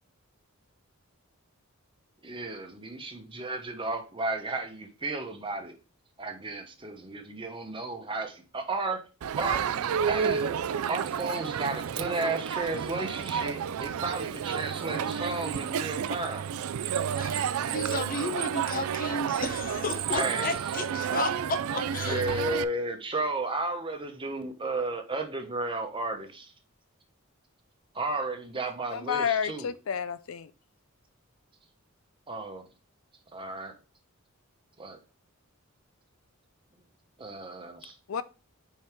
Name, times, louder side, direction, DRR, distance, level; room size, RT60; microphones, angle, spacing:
voice 1, 2.2-5.7 6.2-9.0 9.4-9.7 10.1-10.5 10.9-16.4 17.5-17.7 20.1-20.6 22.0-26.5 27.9-29.7 32.3-32.7 33.3-33.7 34.8-35.0 37.2-38.0, right 2 dB, 25° right, 1.1 m, -33 dB
Crowd, 9.2-22.6, right 8 dB, 85° right, 0.4 m, -31 dB
voice 2, 17.1-22.4, left 2 dB, 40° left, 0.9 m, -33 dB
voice 3, 28.9-30.5 38.1-38.2, left 7 dB, 70° left, 0.4 m, -30 dB
5.4 x 4.6 x 4.5 m
head